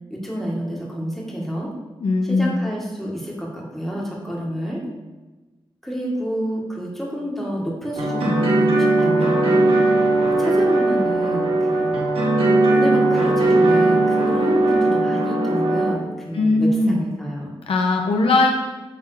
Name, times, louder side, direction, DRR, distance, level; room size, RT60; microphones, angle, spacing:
voice 1, 0.1-1.7 2.3-4.8 5.8-9.7 10.3-11.9 12.6-17.5, equal, 5° left, -3 dB, 1.8 m, -28 dB
voice 2, 2.0-2.6 16.3-17.0 17.7-18.5, left 2 dB, 85° left, 1 dB, 0.9 m, -19 dB
sound 1, 8.0-15.9, right 2 dB, 90° right, 1.8 m, -18 dB
7.9 x 3.9 x 6.5 m, 1.2 s
wide cardioid pair, 130°, 9 cm